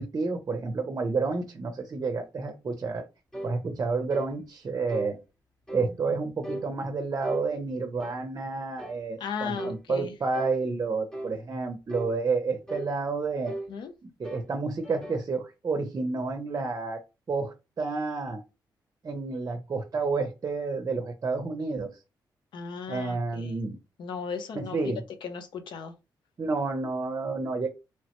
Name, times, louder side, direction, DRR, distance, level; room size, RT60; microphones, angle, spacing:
voice 1, 0.0-3.1 3.4-5.2 5.7-13.5 14.0-17.0 17.3-18.4 19.0-21.9 22.9-23.8 24.5-25.1 26.4-27.7, right 4 dB, 40° right, 0.6 m, -30 dB
sound 1, 3.3-3.6 4.1-4.3 4.9-5.1 5.7-5.9 6.4-6.7 7.2-7.5 8.0-8.2 8.8-9.0 9.5-9.8 10.3-10.6 11.1-11.4 11.9-12.1 12.7-12.9 13.5-13.7 14.2-14.5 14.8-15.3, right 1 dB, 5° left, 0.7 m, -37 dB
voice 2, 9.2-10.1 13.7-13.9 22.5-23.5 24.0-24.9 25.2-25.9, left 6 dB, 75° left, 0.6 m, -36 dB
3.1 x 2.0 x 2.9 m
cardioid pair, 95°, 8 cm